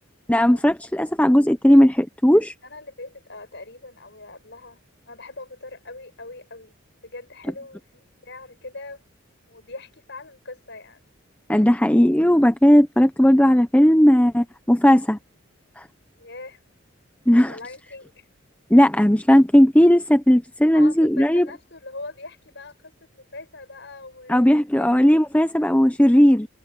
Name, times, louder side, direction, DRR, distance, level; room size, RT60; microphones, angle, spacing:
voice 1, 0.3-2.5 11.5-15.2 15.8-15.9 17.3-17.5 18.7-21.5 24.3-26.5, equal, 5° left, 0.8 m, -16 dB
voice 2, 2.6-4.8 5.1-6.7 7.0-9.0 9.5-11.0 16.2-16.6 17.5-18.2 20.7-25.0, left 2 dB, 55° left, 7.7 m, -41 dB
head